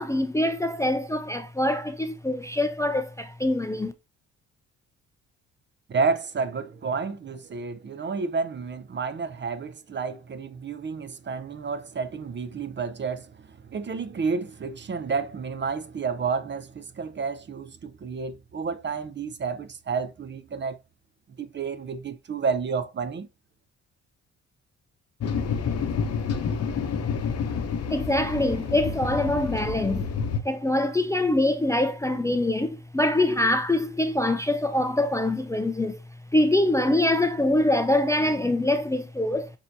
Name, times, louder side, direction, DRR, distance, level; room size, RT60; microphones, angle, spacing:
voice 1, 0.0-3.9 27.9-30.1 30.4-36.0 36.3-39.5, left 1 dB, 10° left, 0.5 m, -24 dB
voice 2, 5.9-20.8 21.4-23.3, right 5 dB, 35° right, 0.7 m, -30 dB
sound 1, 25.2-30.4, left 6 dB, 50° left, 0.8 m, -29 dB
6.5 x 2.8 x 2.6 m
supercardioid pair, 60°, 32 cm